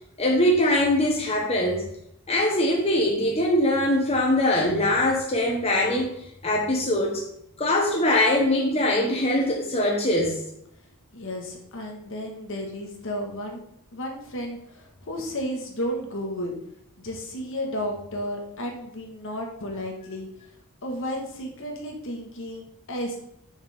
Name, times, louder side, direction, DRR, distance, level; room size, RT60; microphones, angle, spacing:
voice 1, 0.2-1.8 2.3-6.1 6.4-7.2 7.6-10.4, left 1 dB, 30° left, -1 dB, 1.0 m, -22 dB
voice 2, 11.1-13.6 13.9-16.5 17.0-20.3 20.8-23.2, equal, 60° left, 2 dB, 1.5 m, -33 dB
6.5 x 6.5 x 3.5 m, 0.75 s
head